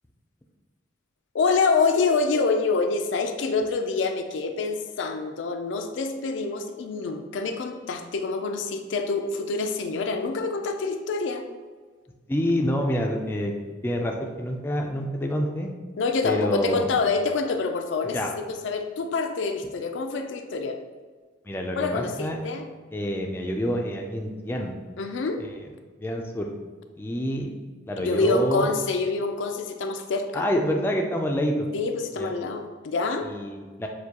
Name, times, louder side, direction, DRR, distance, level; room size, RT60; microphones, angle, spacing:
voice 1, 1.3-11.4 16.0-20.8 21.7-22.6 25.0-25.4 28.0-30.5 31.7-33.3, left 4 dB, 80° left, 6 dB, 0.4 m, -26 dB
voice 2, 12.3-13.5 13.8-15.7 16.2-16.9 18.1-18.3 21.5-22.4 22.9-24.7 25.4-25.7 26.0-26.5 27.0-27.5 27.9-28.7 30.3-31.7 32.2-32.3 33.2-33.9, equal, 10° left, 1 dB, 0.3 m, -27 dB
6.6 x 2.2 x 2.9 m, 1.4 s
head